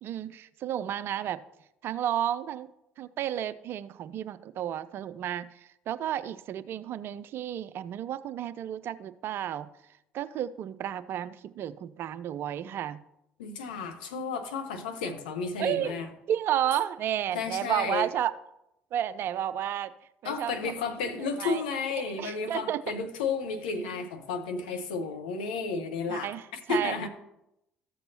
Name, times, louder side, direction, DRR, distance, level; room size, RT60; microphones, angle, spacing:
voice 1, 0.0-1.4 1.8-2.7 3.0-5.5 5.9-9.7 10.1-13.0 15.6-18.3 18.9-19.9 20.2-20.7 21.1-21.6 22.2-23.0 23.8-23.9 24.7-24.8 26.1-26.9, right 11 dB, 50° right, 0.4 m, -32 dB
voice 2, 13.4-16.1 17.3-18.1 20.2-26.3 26.7-27.1, left 4 dB, 75° left, 0.9 m, -32 dB
14.0 x 6.7 x 2.8 m
figure-of-eight pair, 55°, 5 cm